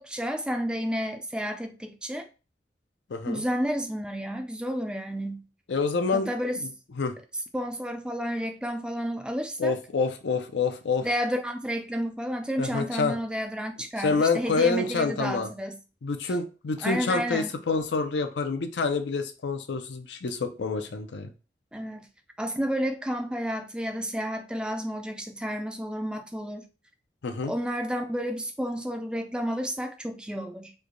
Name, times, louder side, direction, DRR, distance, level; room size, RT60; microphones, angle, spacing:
voice 1, 0.0-2.2 3.2-5.4 6.1-6.5 7.5-9.7 11.0-15.8 16.8-17.5 21.7-22.1 22.4-26.6 27.5-30.7, equal, 5° right, 0.3 m, -31 dB
voice 2, 3.1-3.4 5.7-6.3 6.6-6.7 7.0-7.1 9.6-11.1 12.6-13.1 14.0-15.5 16.0-21.3 27.2-27.5, left 4 dB, 85° left, 0.5 m, -27 dB
3.2 x 2.2 x 3.7 m
head